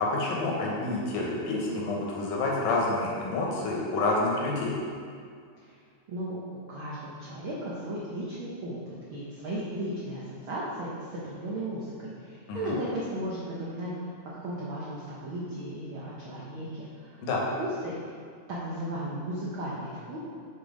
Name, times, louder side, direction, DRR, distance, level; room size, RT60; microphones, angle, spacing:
voice 1, 0.0-4.8 12.5-12.7 17.2-17.5, left 2 dB, 75° left, -3 dB, 2.6 m, -28 dB
voice 2, 6.1-6.4 6.7-13.9 14.4-17.2 17.6-18.1 18.5-20.2, right 1 dB, 80° right, -6 dB, 1.1 m, -35 dB
7.1 x 4.6 x 5.1 m, 2.2 s
omnidirectional pair, 3.7 m